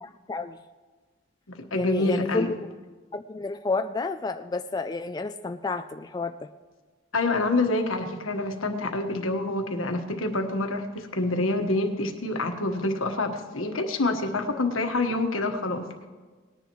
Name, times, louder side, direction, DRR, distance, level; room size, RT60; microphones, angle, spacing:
voice 1, 0.0-0.6 1.7-2.7 3.1-6.4, left 3 dB, 20° left, 7 dB, 0.3 m, -30 dB
voice 2, 1.5-2.5 7.1-15.9, left 2 dB, 85° left, 4 dB, 1.4 m, -27 dB
19.5 x 10.0 x 3.1 m, 1.4 s
head